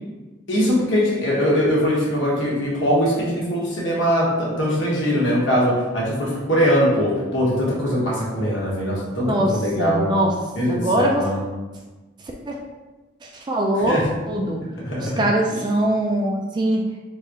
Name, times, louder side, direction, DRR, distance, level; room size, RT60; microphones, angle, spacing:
voice 1, 0.5-9.3 9.5-10.1 10.5-11.4 13.8-14.0 14.8-15.2, equal, 75° left, -5 dB, 1.4 m, -21 dB
voice 2, 9.2-10.3 10.7-11.3 12.5-12.6 13.2-14.0 14.3-14.6 15.0-16.8, right 1 dB, 25° right, 0 dB, 0.3 m, -22 dB
3.7 x 2.4 x 4.0 m, 1.2 s
head